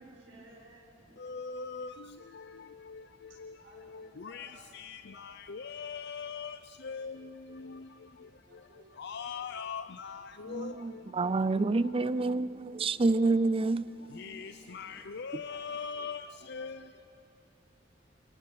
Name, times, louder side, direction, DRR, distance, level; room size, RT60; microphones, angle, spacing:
voice 1, 0.0-1.3 3.6-4.8 5.1-5.2 8.4-9.0 9.3-9.7 14.8-15.1 15.5-15.6 15.9-16.9, right 2 dB, 80° right, 6.3 m, -59 dB
voice 2, 1.2-1.9 4.2-4.5 4.7-6.6 6.8-7.1 9.0-10.2 10.5-10.7 14.2-16.2 16.5-16.8, left 6 dB, 60° left, 0.6 m, -40 dB
voice 3, 10.5-14.2 15.3-15.4, right 3 dB, 30° right, 0.5 m, -28 dB
27.5 x 27.0 x 5.8 m
head